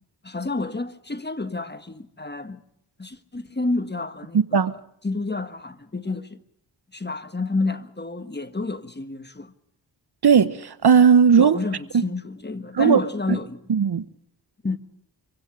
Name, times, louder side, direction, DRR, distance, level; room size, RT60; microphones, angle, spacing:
voice 1, 0.2-2.6 3.0-4.8 5.0-6.4 6.9-9.5 11.4-13.6 14.6-14.8, left 3 dB, 20° left, 1.5 m, -29 dB
voice 2, 4.3-4.7 10.2-11.6 11.9-12.0 12.7-13.0 13.3-13.4 13.7-14.0, right 6 dB, 55° right, 1.1 m, -17 dB
25.0 x 16.5 x 8.4 m
cardioid pair, 40°, 46 cm